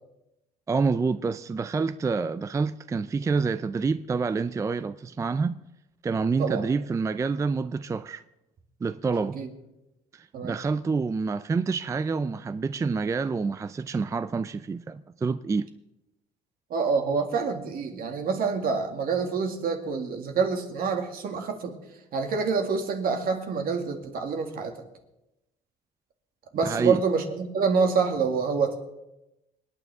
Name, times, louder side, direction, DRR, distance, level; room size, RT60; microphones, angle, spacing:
voice 1, 0.7-5.6 6.0-8.2 8.8-9.4 10.1-15.7 26.6-27.0, right 4 dB, 20° right, 0.4 m, -27 dB
voice 2, 16.7-21.8 22.1-24.8 26.5-28.8, right 5 dB, 60° right, 2.2 m, -27 dB
26.5 x 9.5 x 3.6 m
cardioid pair, 110°, 17 cm